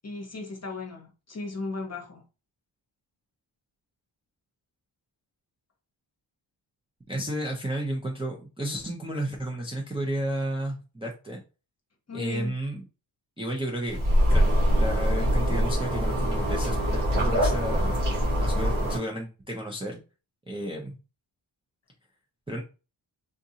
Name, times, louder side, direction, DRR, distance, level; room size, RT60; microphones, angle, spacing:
voice 1, 0.0-2.2 12.1-12.5, left 3 dB, 30° left, 0.9 m, -36 dB
voice 2, 7.1-11.4 12.1-12.8 13.4-14.0 14.3-18.0 18.4-20.0 20.5-20.9 22.5-22.6, right 1 dB, 10° right, 0.5 m, -32 dB
sound 1, 13.9-19.0, equal, 70° right, 1.8 m, -24 dB
3.7 x 2.5 x 2.7 m
wide cardioid pair, 130°, 49 cm